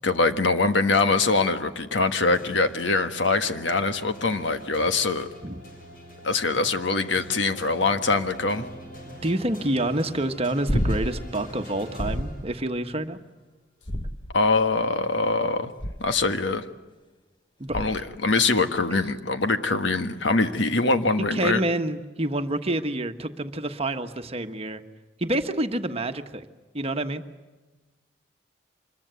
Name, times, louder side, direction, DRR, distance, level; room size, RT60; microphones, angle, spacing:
voice 1, 0.0-5.3 6.2-8.7 14.3-15.7 16.0-16.6 17.7-21.6, left 3 dB, 70° left, 9 dB, 1.5 m, -23 dB
sound 1, 2.3-12.9, equal, 50° left, 7.4 m, -44 dB
voice 2, 9.2-13.2 17.6-17.8 21.2-24.8 25.2-26.5 26.7-27.2, right 1 dB, 35° right, 8 dB, 1.3 m, -28 dB
sound 2, 10.7-11.3 12.0-12.5 13.8-14.6 15.8-16.3 17.7-18.1 20.5-20.6, equal, 25° left, 1.0 m, -29 dB
25.5 x 22.0 x 8.2 m, 1.2 s
head